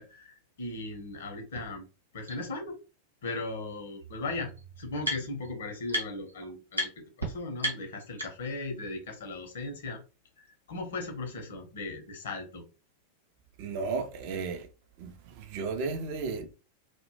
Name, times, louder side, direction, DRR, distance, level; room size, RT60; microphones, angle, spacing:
voice 1, 0.0-1.8 2.1-2.8 3.2-4.5 4.8-6.9 7.2-10.0 10.4-12.6, left 2 dB, 60° left, 0.6 m, -37 dB
sound 1, 1.5-1.6 2.3-2.4 3.7-3.8 4.0-5.5 5.9-6.3 6.7-6.9 7.2-7.3 7.6-8.6, equal, 90° right, 0.7 m, -34 dB
voice 2, 13.6-14.7 15.0-16.5, right 4 dB, 45° right, 0.4 m, -34 dB
2.1 x 2.1 x 2.8 m
figure-of-eight pair, 90°, 0 cm